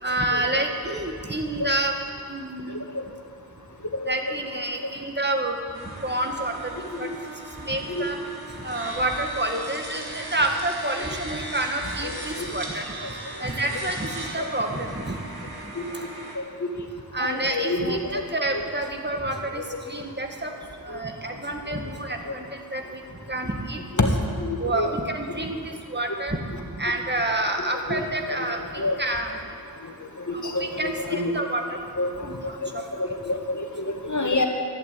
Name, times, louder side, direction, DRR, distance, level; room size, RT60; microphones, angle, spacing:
voice 1, 0.0-1.9 2.3-2.8 4.1-7.1 7.6-8.2 8.6-12.9 13.4-15.2 15.6-16.1 17.1-20.5 20.8-23.0 23.3-24.1 24.6-25.6 25.9-26.4 26.8-29.4 30.3-31.8 32.2-32.8, right 1 dB, 30° right, 3 dB, 1.9 m, -29 dB
sound 1, 5.7-16.4, right 2 dB, 80° right, 2.3 m, -38 dB
voice 2, 16.4-16.7 17.2-18.2 18.5-18.6 19.5-19.6 22.3-22.4 24.0-24.1 24.4-24.9 27.9-28.5 28.8-29.0 30.3-31.3 32.0-32.3 32.6-32.7 33.0-34.5, left 2 dB, 50° left, 3 dB, 1.9 m, -27 dB
11.5 x 11.5 x 8.6 m, 2.2 s
wide cardioid pair, 40°, 37 cm